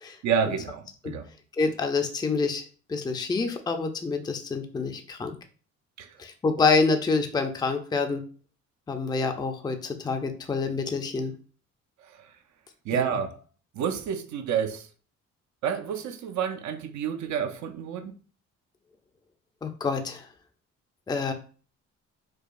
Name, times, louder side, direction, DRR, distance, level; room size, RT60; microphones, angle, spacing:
voice 1, 0.2-1.2 6.0-6.1 12.9-13.4 13.7-14.9 15.6-18.1, right 7 dB, 70° right, 0.5 m, -29 dB
voice 2, 1.6-2.6 2.9-5.3 6.2-8.2 8.9-11.3 12.9-13.0 19.6-20.3 21.1-21.3, left 4 dB, 15° left, 0.4 m, -27 dB
4.7 x 2.2 x 2.5 m
cardioid pair, 90°, 30 cm